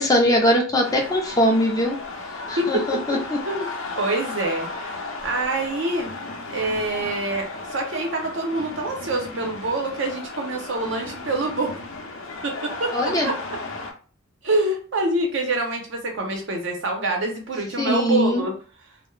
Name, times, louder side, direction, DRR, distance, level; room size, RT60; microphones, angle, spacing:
voice 1, 0.0-2.0 2.5-3.4 12.9-13.3 17.8-18.4, equal, 15° left, 1 dB, 0.4 m, -21 dB
sound 1, 0.8-13.9, left 3 dB, 75° left, 0.5 m, -35 dB
voice 2, 2.6-3.2 3.4-3.7 4.0-6.1 6.5-11.7 12.4-13.4 14.4-18.5, right 2 dB, 65° right, 2 dB, 0.6 m, -26 dB
2.2 x 2.0 x 3.0 m, 0.38 s
head